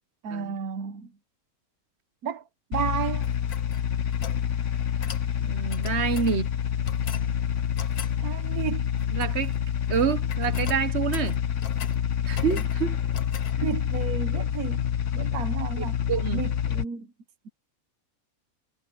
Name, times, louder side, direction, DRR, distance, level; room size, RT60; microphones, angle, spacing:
voice 1, 0.2-1.1 2.2-2.4 2.7-3.3 8.2-8.9 13.6-14.9 15.1-15.9 16.3-17.1, right 7 dB, 80° right, 1.6 m, -32 dB
sound 1, 2.7-16.8, left 8 dB, 60° left, 1.2 m, -27 dB
sound 2, 3.2-4.4 5.0-5.3 5.7-6.4 6.8-7.3 7.8-8.2 9.0-9.6 9.8-10.0 10.3-12.0 12.3-12.8 13.1-13.6, left 9 dB, 85° left, 1.7 m, -40 dB
voice 2, 5.4-6.5 9.1-9.5 9.9-11.4 12.3-13.0 16.1-16.4, right 7 dB, 50° right, 1.1 m, -27 dB
omnidirectional pair, 1.5 m